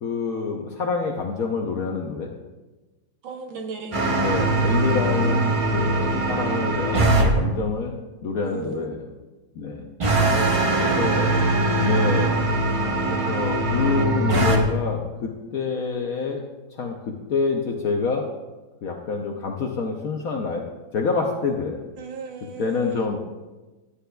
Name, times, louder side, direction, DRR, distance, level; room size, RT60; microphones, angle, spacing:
voice 1, 0.0-2.3 4.2-8.0 8.2-9.0 9.6-9.9 10.7-11.4 11.8-12.4 13.1-16.4 16.7-18.2 18.8-20.6 20.9-21.8 22.6-23.2, left 4 dB, 65° left, 2 dB, 0.9 m, -27 dB
voice 2, 3.2-4.1 8.4-8.9 10.6-11.5 22.0-23.2, right 4 dB, 80° right, 2 dB, 1.9 m, -36 dB
sound 1, 3.9-7.3 10.0-14.6, right 2 dB, 60° right, 0.3 m, -21 dB
11.5 x 9.7 x 2.3 m, 1.2 s
omnidirectional pair, 2.2 m